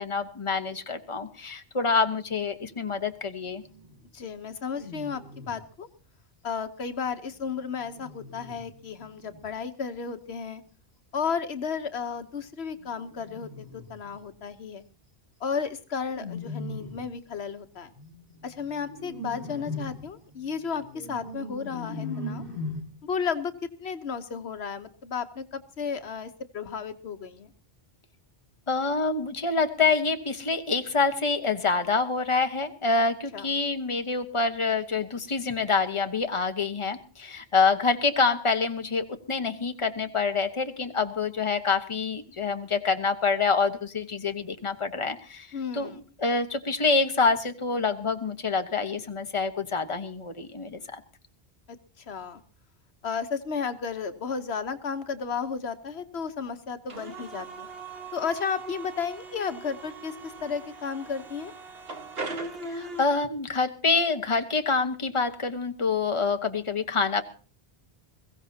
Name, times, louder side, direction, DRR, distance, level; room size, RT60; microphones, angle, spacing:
voice 1, 0.0-3.6 28.7-51.0 62.7-67.2, left 4 dB, 30° left, 7 dB, 1.3 m, -26 dB
sound 1, 3.6-4.1 4.6-5.7 7.1-9.5 12.8-14.3 16.0-17.2 17.9-22.8, left 2 dB, 45° right, 4.4 m, -40 dB
voice 2, 4.1-5.9 6.4-10.6 11.1-14.8 15.4-17.9 18.4-22.4 23.0-23.5 23.8-27.5 33.3-33.5 45.5-46.0 52.0-52.4 53.0-57.7 58.1-61.5, left 6 dB, 80° left, 9 dB, 1.3 m, -33 dB
sound 2, 56.9-63.0, right 3 dB, 65° right, 1.7 m, -39 dB
22.0 x 16.0 x 2.8 m, 0.39 s
omnidirectional pair, 1.1 m